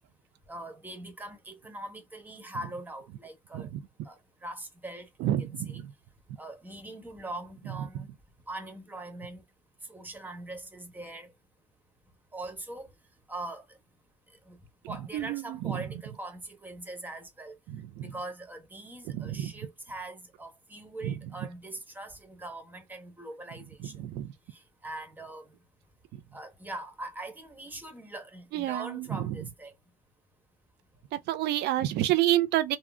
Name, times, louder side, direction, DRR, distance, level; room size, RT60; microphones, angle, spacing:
voice 1, 0.5-3.7 4.0-4.2 4.4-5.8 6.4-8.1 8.5-9.4 9.9-11.3 12.3-12.9 13.3-13.6 14.5-14.6 14.9-17.6 18.0-23.9 24.5-25.5 26.3-29.7, right 2 dB, 10° right, 1.0 m, -42 dB
voice 2, 5.2-5.9 14.8-15.8 17.7-18.1 19.1-19.5 21.0-21.1 24.0-24.3 26.1-26.2 28.5-29.4 31.1-32.8, right 13 dB, 80° right, 0.4 m, -29 dB
3.6 x 2.0 x 2.3 m
cardioid pair, 110°, 17 cm